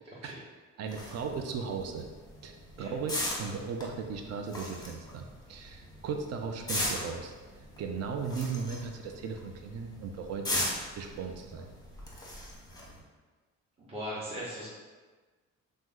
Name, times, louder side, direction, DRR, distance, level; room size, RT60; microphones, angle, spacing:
voice 1, 0.8-2.1 2.4-7.3 7.8-10.6 10.9-11.7, right 5 dB, 55° right, 4 dB, 0.5 m, -37 dB
sound 1, 0.9-13.0, left 1 dB, 15° left, 0.8 m, -39 dB
voice 2, 13.8-14.7, equal, 20° right, -9 dB, 0.8 m, -38 dB
2.9 x 2.1 x 3.6 m, 1.3 s
cardioid pair, 90°, 30 cm